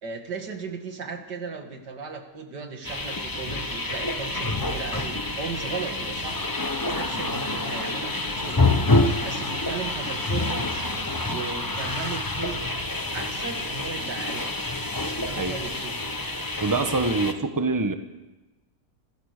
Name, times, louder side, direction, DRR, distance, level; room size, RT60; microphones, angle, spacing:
voice 1, 0.0-6.5 6.8-8.6 9.2-10.9 11.2-12.6 13.1-14.5 15.0-16.0, right 5 dB, 85° right, 5 dB, 2.7 m, -36 dB
sound 1, 2.8-17.3, left 2 dB, 15° left, 0.9 m, -27 dB
sound 2, 4.3-13.7, right 3 dB, 55° right, 8.4 m, -47 dB
voice 2, 16.6-17.9, right 3 dB, 15° right, 8 dB, 1.1 m, -25 dB
28.0 x 14.0 x 6.7 m, 1.1 s
omnidirectional pair, 1.8 m